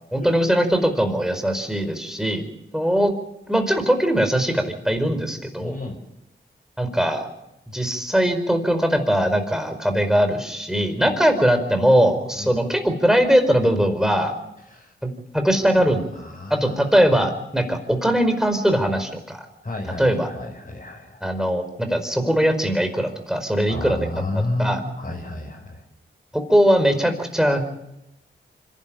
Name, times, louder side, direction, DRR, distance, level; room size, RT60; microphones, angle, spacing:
voice 1, 0.1-2.4 2.7-3.1 3.5-5.8 6.8-7.3 7.7-14.3 15.3-16.1 16.5-19.4 20.0-20.3 21.2-24.0 24.6-24.8 26.3-27.8, equal, ahead, 7 dB, 4.9 m, -20 dB
voice 2, 5.6-6.0 11.0-11.2 12.3-12.5 14.7-14.9 16.1-17.2 19.6-21.2 23.7-25.8, left 2 dB, 35° left, -1 dB, 5.6 m, -31 dB
25.5 x 12.0 x 9.0 m, 0.85 s
cardioid pair, 50°, 21 cm